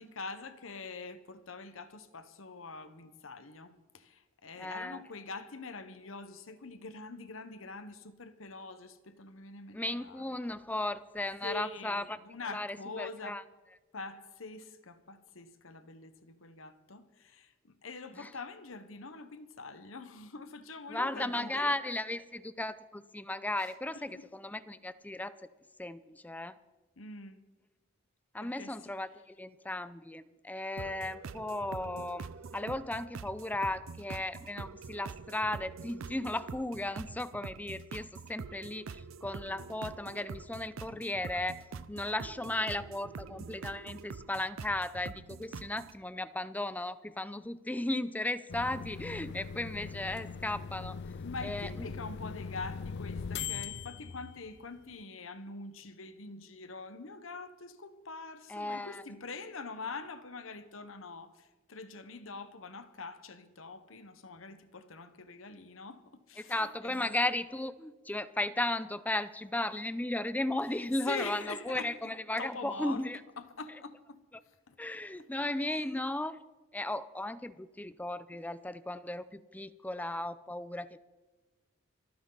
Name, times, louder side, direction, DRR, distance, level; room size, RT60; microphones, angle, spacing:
voice 1, 0.0-10.4 11.4-13.5 13.9-21.8 23.6-24.3 27.0-27.4 28.4-28.9 51.2-67.2 70.8-74.2 74.7-74.8 75.7-76.0, left 3 dB, 75° left, 1.1 m, -44 dB
voice 2, 4.6-5.0 9.7-12.2 12.5-13.4 18.1-18.3 20.9-25.3 25.8-26.6 28.3-51.0 51.4-51.7 58.5-59.0 66.4-73.2 74.8-76.4 76.7-81.0, left 1 dB, 10° left, 0.5 m, -35 dB
sound 1, 30.8-46.0, right 5 dB, 70° right, 0.5 m, -45 dB
sound 2, 48.5-54.9, left 6 dB, 55° left, 0.5 m, -41 dB
28.0 x 9.7 x 4.0 m
head